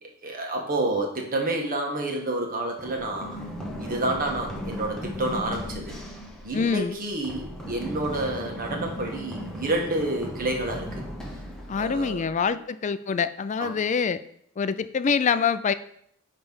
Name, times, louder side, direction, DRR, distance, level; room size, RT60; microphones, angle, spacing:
voice 1, 0.0-3.4 3.8-6.0 6.4-11.0 11.7-12.2 13.6-13.8, right 2 dB, 45° right, 1 dB, 1.4 m, -29 dB
Run, 2.8-12.5, equal, 5° left, 1.1 m, -37 dB
voice 2, 6.5-7.0 11.7-14.2 14.6-15.7, left 6 dB, 35° left, 13 dB, 0.4 m, -25 dB
9.5 x 3.3 x 5.5 m, 0.69 s
head